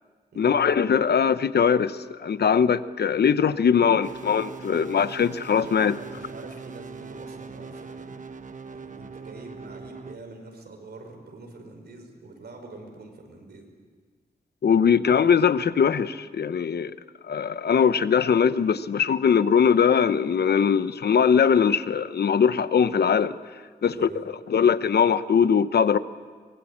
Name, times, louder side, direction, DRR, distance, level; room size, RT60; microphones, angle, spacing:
voice 1, 0.4-6.0 14.6-17.0 17.3-23.4 23.8-24.1 24.5-26.0, left 7 dB, 75° left, 13 dB, 0.9 m, -21 dB
sound 1, 4.0-10.2, right 4 dB, 50° right, 1.2 m, -41 dB
voice 2, 5.9-8.2 8.6-13.7 23.9-24.3, right 2 dB, 80° right, 3 dB, 5.7 m, -44 dB
24.0 x 23.0 x 8.7 m, 1.5 s
wide cardioid pair, 95°, 17 cm